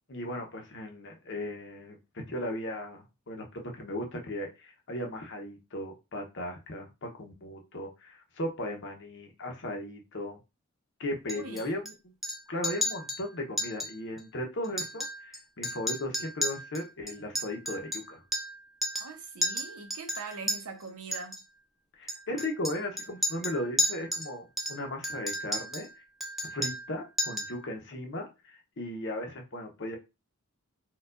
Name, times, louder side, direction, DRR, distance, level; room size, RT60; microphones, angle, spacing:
voice 1, 0.1-2.0 2.3-10.4 11.0-11.9 12.5-18.2 22.0-25.9 26.5-30.0, left 1 dB, 55° left, 0.8 m, -37 dB
Chink clink, 11.3-11.9 12.2-12.4 12.6-13.2 13.6-13.9 14.2-14.3 14.6-15.4 15.6-18.6 18.8-19.1 19.4-20.6 21.1-21.4 22.1-24.3 24.6-25.9 26.2-26.9 27.2-27.6, left 1 dB, ahead, 0.5 m, -32 dB
voice 2, 11.3-11.8 19.0-21.4, right 4 dB, 75° right, 0.8 m, -42 dB
4.4 x 2.4 x 2.5 m
head